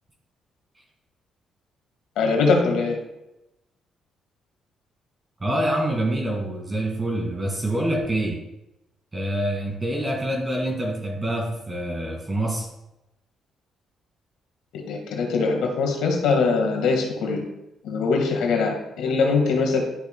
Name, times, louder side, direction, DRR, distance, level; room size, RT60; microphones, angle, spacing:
voice 1, 2.2-3.0 14.7-17.4 17.8-19.8, left 4 dB, 85° left, 3 dB, 1.6 m, -22 dB
voice 2, 5.4-8.4 9.1-12.7, right 1 dB, 20° right, 0 dB, 2.0 m, -26 dB
11.5 x 6.2 x 2.2 m, 0.91 s
cardioid pair, 90°, 0 cm